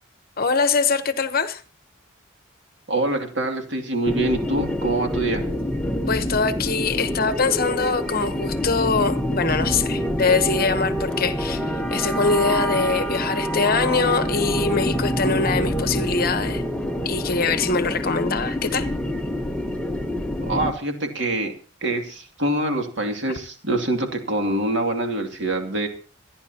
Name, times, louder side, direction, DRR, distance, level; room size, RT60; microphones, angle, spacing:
voice 1, 0.4-1.6 6.1-16.6 17.0-18.9, left 4 dB, 45° left, 1.0 m, -23 dB
voice 2, 2.9-5.4 20.4-21.5 21.8-25.9, right 2 dB, 55° right, 2.5 m, -25 dB
sound 1, 4.0-20.7, equal, 5° left, 1.0 m, -26 dB
26.0 x 10.5 x 2.9 m
head